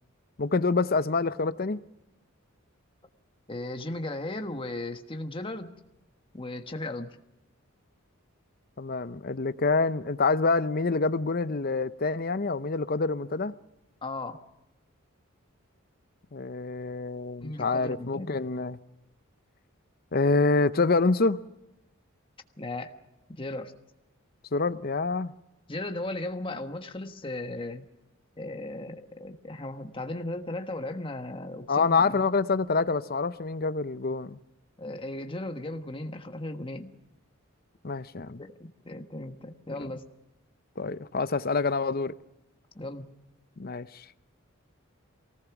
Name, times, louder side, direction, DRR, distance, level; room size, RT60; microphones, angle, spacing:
voice 1, 0.4-1.8 8.8-13.5 16.3-18.8 20.1-21.4 24.5-25.3 31.7-34.4 37.8-38.4 39.8-39.9 40.8-42.1 43.6-44.0, left 3 dB, 45° left, 0.7 m, -26 dB
voice 2, 3.5-5.7 6.3-7.2 14.0-14.4 17.4-18.3 22.6-22.9 23.3-23.7 25.7-27.8 28.4-32.2 34.8-36.9 38.4-40.1 42.7-43.1, left 2 dB, 25° left, 1.4 m, -36 dB
24.0 x 18.5 x 6.0 m
head